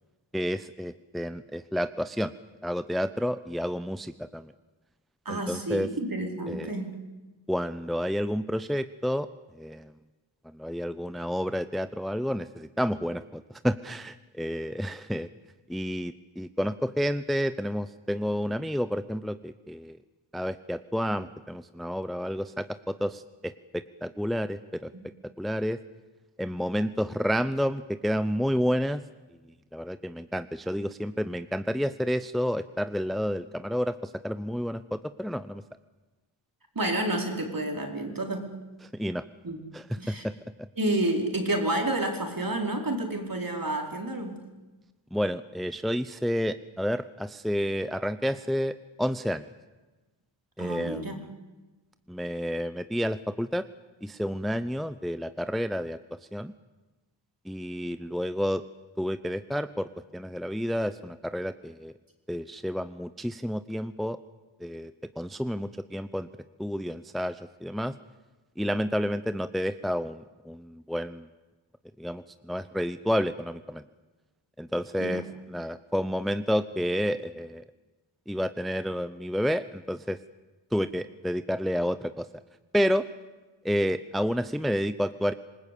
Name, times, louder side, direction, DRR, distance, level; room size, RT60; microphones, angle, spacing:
voice 1, 0.3-2.3 2.6-4.5 5.3-5.9 6.5-6.7 7.5-9.3 9.6-9.9 10.5-15.3 15.7-20.0 20.3-24.9 25.4-25.8 26.4-29.0 29.7-35.6 39.0-39.2 39.7-40.3 45.1-48.7 49.0-49.5 50.6-51.2 52.1-53.6 54.0-56.0 56.3-56.5 57.5-58.6 59.0-61.9 62.3-64.2 64.6-64.9 65.2-66.3 66.6-67.9 68.6-71.3 72.0-73.8 74.6-75.2 75.5-77.6 78.3-80.2 80.7-82.3 82.7-83.0 83.6-85.3, equal, ahead, 12 dB, 0.7 m, -30 dB
voice 2, 5.2-7.0 24.9-25.1 36.7-38.6 39.4-39.6 40.0-40.2 40.8-44.5 50.6-51.3 75.0-75.3, right 1 dB, 45° right, 3 dB, 4.5 m, -30 dB
27.0 x 20.0 x 8.5 m, 1.2 s
wide cardioid pair, 60°, 48 cm